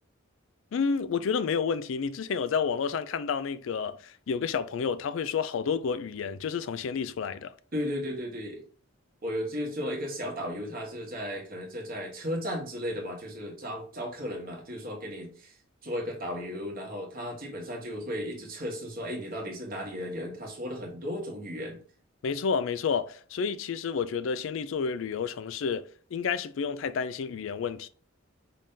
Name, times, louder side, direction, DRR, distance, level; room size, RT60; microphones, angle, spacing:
voice 1, 0.7-7.5 22.2-27.9, left 6 dB, 70° left, 0.4 m, -30 dB
voice 2, 7.7-8.6 9.2-15.6 15.8-21.8, equal, 45° right, 1.4 m, -35 dB
5.2 x 2.8 x 3.7 m
head